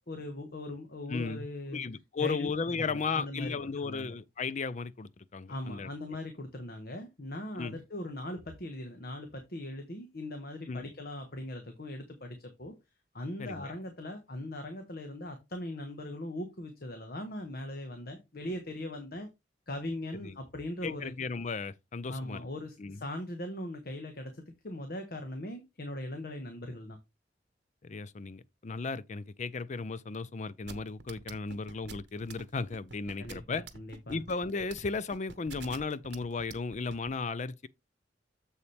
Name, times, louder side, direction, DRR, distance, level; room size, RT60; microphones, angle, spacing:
voice 1, 0.1-1.8 2.2-2.5 2.8-3.5 3.8-4.1 5.5-12.7 13.1-19.3 19.7-21.1 22.1-27.0 33.2-34.2, left 1 dB, 55° left, 1.3 m, -40 dB
voice 2, 1.1-1.5 1.7-5.9 7.6-7.8 10.7-10.9 13.4-13.7 20.2-20.4 20.8-22.5 22.8-23.0 27.8-33.6 34.1-37.7, left 4 dB, 40° left, 0.5 m, -35 dB
sound 1, 30.7-37.1, right 4 dB, 75° right, 1.0 m, -46 dB
7.2 x 6.9 x 3.3 m
head